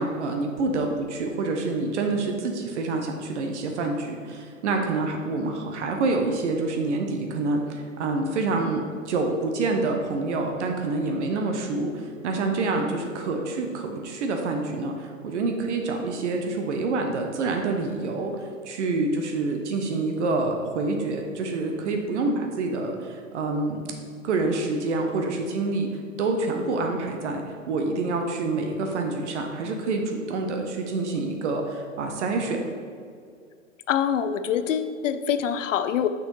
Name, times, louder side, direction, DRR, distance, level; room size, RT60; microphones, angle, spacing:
voice 1, 0.0-23.8 24.2-32.6, right 3 dB, 55° right, 3 dB, 0.9 m, -27 dB
voice 2, 33.9-36.1, left 8 dB, 65° left, 11 dB, 0.6 m, -25 dB
6.2 x 6.2 x 3.2 m, 2.2 s
hypercardioid pair, 115°, 41 cm